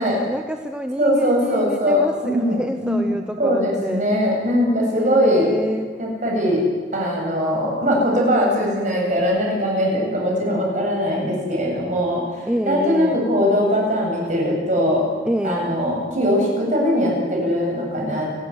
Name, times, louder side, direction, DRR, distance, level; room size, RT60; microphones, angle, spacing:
voice 1, 0.0-4.1 4.9-5.9 12.5-13.2 15.3-15.7, equal, 5° right, 6 dB, 0.9 m, -27 dB
voice 2, 1.0-5.5 6.0-6.6 6.9-15.0 15.4-18.3, equal, 40° right, -1 dB, 8.0 m, -21 dB
28.5 x 13.5 x 9.7 m, 1.5 s
head